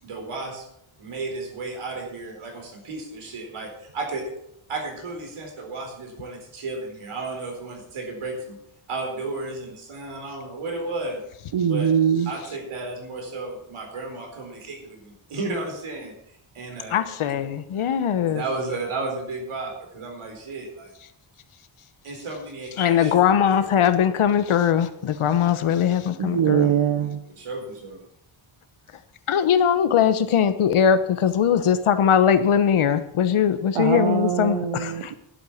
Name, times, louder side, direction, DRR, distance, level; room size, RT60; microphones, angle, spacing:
voice 1, 0.0-0.6 1.0-4.3 4.7-8.6 8.9-11.2 11.6-11.9 12.3-16.1 16.5-17.1 18.3-20.9 22.0-23.2 27.3-28.0, right 3 dB, 90° right, 4.3 m, -33 dB
voice 2, 11.5-12.3 26.2-27.2 33.7-35.1, right 8 dB, 70° right, 1.0 m, -22 dB
voice 3, 16.9-18.4 22.8-26.7 29.3-35.1, left 8 dB, 85° left, 1.2 m, -20 dB
11.5 x 8.4 x 7.1 m
wide cardioid pair, 175°, 49 cm